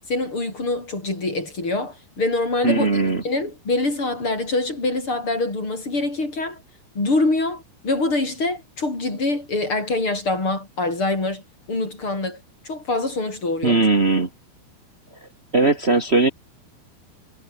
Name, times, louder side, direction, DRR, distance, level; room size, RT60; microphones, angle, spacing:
voice 1, 0.1-2.9 3.2-6.6 6.9-11.4 11.7-13.9, left 2 dB, 30° left, 8.2 m, -25 dB
voice 2, 2.6-3.2 13.6-14.3 15.5-16.3, right 3 dB, 75° right, 0.6 m, -18 dB
omnidirectional pair, 4.9 m